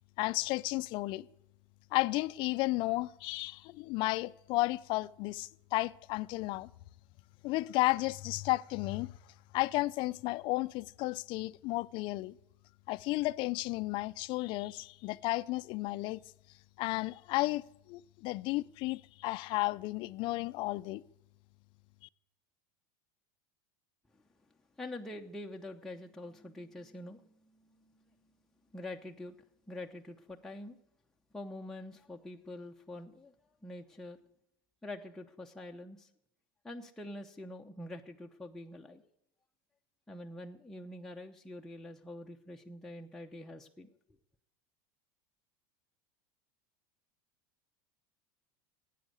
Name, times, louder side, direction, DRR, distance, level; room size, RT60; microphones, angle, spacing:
voice 1, 0.2-1.3 1.9-6.7 7.4-9.1 9.5-12.3 12.9-16.2 16.8-21.0, left 20 dB, 50° left, 0.5 m, -33 dB
voice 2, 24.8-28.3 28.7-29.4 29.7-30.8 31.3-33.3 33.6-34.2 34.8-36.1 36.6-39.0 40.1-43.9, left 1 dB, 5° left, 0.8 m, -45 dB
14.5 x 9.2 x 8.0 m
supercardioid pair, 120°, 10 cm